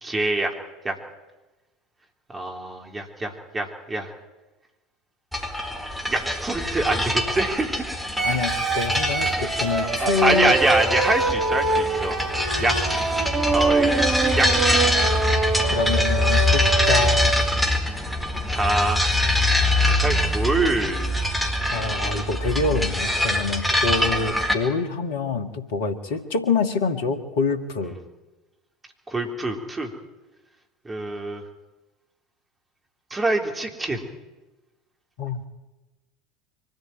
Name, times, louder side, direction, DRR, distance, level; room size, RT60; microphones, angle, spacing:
voice 1, 0.0-0.5 0.8-1.0 2.3-4.1 6.1-7.8 9.8-12.8 13.5-14.1 14.4-14.8 18.5-19.0 19.8-21.1 29.1-29.9 30.8-31.4 33.1-34.1, right 2 dB, 15° right, 2 dB, 3.7 m, -25 dB
sound 1, 5.3-24.5, left 1 dB, 5° left, 4.5 m, -24 dB
voice 2, 8.2-10.6 15.7-17.3 21.7-27.9 35.2-35.4, left 4 dB, 65° left, 8 dB, 1.9 m, -26 dB
sound 2, 8.2-17.5, right 4 dB, 40° right, 4.4 m, -25 dB
23.5 x 14.0 x 9.2 m, 1.1 s
figure-of-eight pair, 70°, 0 cm